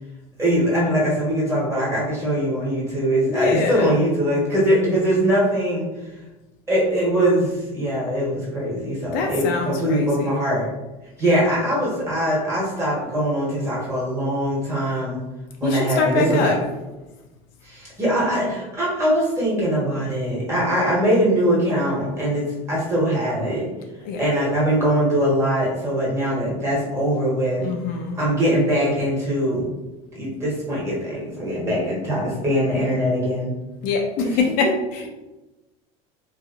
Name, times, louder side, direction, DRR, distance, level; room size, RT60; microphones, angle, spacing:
voice 1, 0.4-5.9 6.7-10.7 11.2-15.2 15.6-16.6 17.6-23.7 24.2-27.6 28.1-29.7 30.1-33.5 34.2-34.4, equal, 15° right, -6 dB, 1.3 m, -22 dB
voice 2, 3.2-3.9 9.1-10.4 15.6-16.6 24.0-24.2 27.6-28.2 33.8-35.1, left 4 dB, 55° left, 2 dB, 0.4 m, -24 dB
2.9 x 2.3 x 2.4 m, 1.1 s
supercardioid pair, 125°, 18 cm